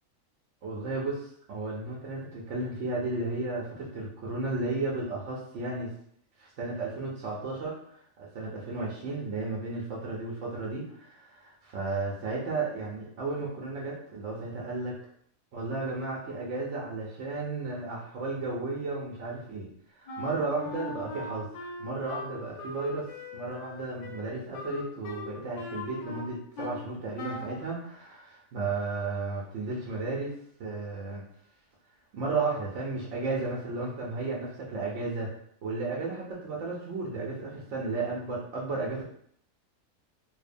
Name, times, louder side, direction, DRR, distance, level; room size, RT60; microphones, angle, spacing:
voice 1, 0.6-5.9 6.4-7.8 8.2-15.0 15.5-23.1 23.3-30.3 30.6-31.2 32.1-35.3 35.6-39.0, right 3 dB, 65° right, -3 dB, 0.9 m, -34 dB
Wind instrument woodwind instrument, 20.1-26.9 27.2-27.6, left 3 dB, 85° left, 1.1 m, -40 dB
2.8 x 2.0 x 2.5 m, 0.65 s
omnidirectional pair, 1.5 m